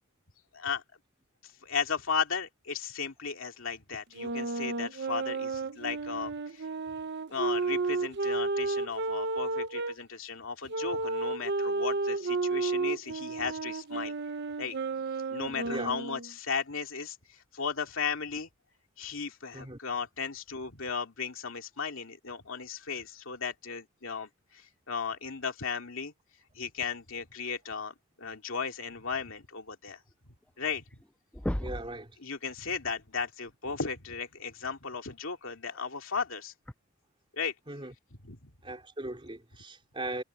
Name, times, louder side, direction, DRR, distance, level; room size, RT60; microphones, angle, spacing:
voice 1, 0.5-0.8 1.4-6.7 7.3-14.1 14.6-14.8 15.3-18.5 19.0-26.1 26.5-30.0 30.6-30.8 32.2-36.5 37.3-37.5 38.2-38.5, left 5 dB, 65° left, 2.7 m, -36 dB
sound 1, 4.1-9.9 10.7-16.3, right 3 dB, 55° right, 1.0 m, -32 dB
sound 2, 30.4-30.5 30.8-31.1 31.3-32.0 33.7-33.8 35.6-35.8 36.7-36.8, equal, 5° left, 0.6 m, -34 dB
voice 2, 31.6-32.2 37.7-37.9 38.6-40.2, right 2 dB, 25° right, 3.6 m, -38 dB
head